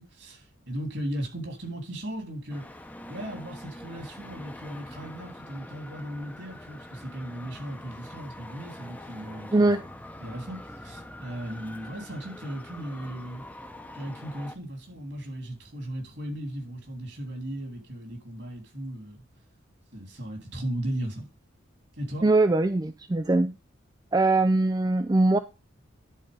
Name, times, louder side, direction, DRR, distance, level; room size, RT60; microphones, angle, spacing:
voice 1, 0.0-2.6 3.1-9.7 10.2-13.4 13.9-19.2 19.9-21.3 22.0-22.2, right 1 dB, 60° right, 3.2 m, -36 dB
Traffic noise roadway noise, 2.5-14.5, left 1 dB, 10° left, 0.8 m, -44 dB
voice 2, 9.5-9.8 22.2-23.5 24.1-25.4, right 2 dB, 20° right, 0.4 m, -22 dB
11.0 x 4.5 x 5.3 m
head